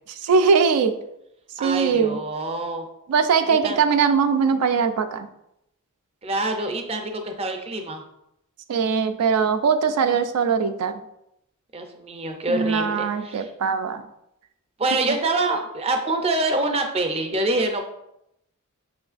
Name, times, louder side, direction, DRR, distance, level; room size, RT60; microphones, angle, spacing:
voice 1, 0.2-1.0 1.6-2.2 3.1-5.3 8.7-11.0 12.5-14.0, right 5 dB, 90° right, 8 dB, 0.4 m, -21 dB
voice 2, 1.6-2.9 3.5-3.8 6.2-8.0 11.7-13.5 14.8-17.8, right 2 dB, 25° right, 5 dB, 0.4 m, -26 dB
6.0 x 3.1 x 2.4 m, 0.82 s
head